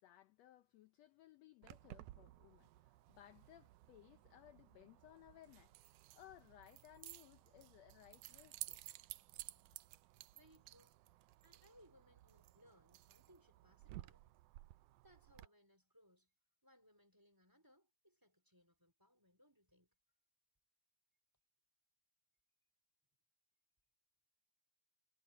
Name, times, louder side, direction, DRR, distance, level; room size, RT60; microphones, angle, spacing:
voice 1, 0.0-8.8, left 13 dB, 70° left, 1.8 m, -63 dB
Keys jangling, 1.6-15.5, right 17 dB, 85° right, 2.1 m, -56 dB
voice 2, 10.3-11.0 11.4-14.3 15.0-16.3 16.6-20.0, equal, 5° right, 4.0 m, -69 dB
omnidirectional pair, 3.5 m